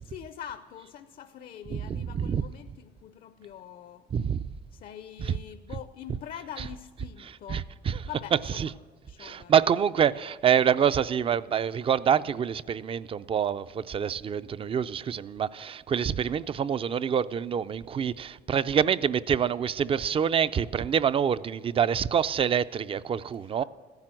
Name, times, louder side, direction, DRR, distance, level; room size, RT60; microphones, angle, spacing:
voice 1, 0.0-4.0 4.7-8.7 9.1-9.5 23.4-23.6, left 10 dB, 55° left, 0.6 m, -44 dB
voice 2, 1.7-2.4 4.1-4.5 7.5-8.0 9.2-23.6, right 8 dB, 35° right, 0.4 m, -26 dB
15.0 x 10.5 x 7.7 m
cardioid pair, 110°, 17 cm